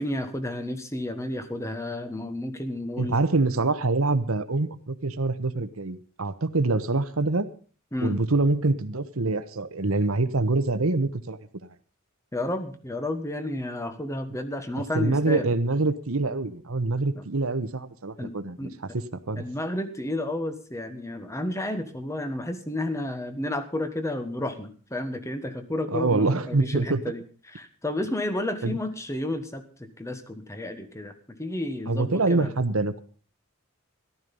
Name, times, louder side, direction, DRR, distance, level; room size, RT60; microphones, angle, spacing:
voice 1, 0.0-3.1 7.9-8.2 12.3-15.5 17.1-17.2 18.2-18.3 18.6-18.7 19.3-27.2 27.5-32.5, left 1 dB, 15° left, 9 dB, 1.4 m, -31 dB
voice 2, 3.0-7.5 8.0-11.4 14.9-19.4 25.9-27.0 28.6-28.8 31.9-33.0, right 3 dB, 75° right, 11 dB, 1.1 m, -25 dB
14.5 x 12.0 x 5.4 m, 0.41 s
head